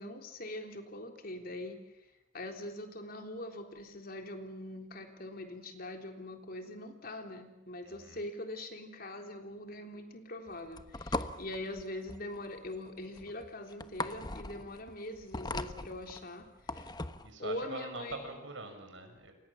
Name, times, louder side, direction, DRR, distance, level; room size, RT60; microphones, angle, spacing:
voice 1, 0.0-1.8 2.3-16.9 17.4-18.4, left 1 dB, 50° left, 4 dB, 3.6 m, -42 dB
sound 1, 10.5-17.3, left 2 dB, 20° left, 1.0 m, -40 dB
voice 2, 17.2-19.3, right 3 dB, 75° right, 6 dB, 6.4 m, -43 dB
30.0 x 27.0 x 7.3 m, 0.95 s
head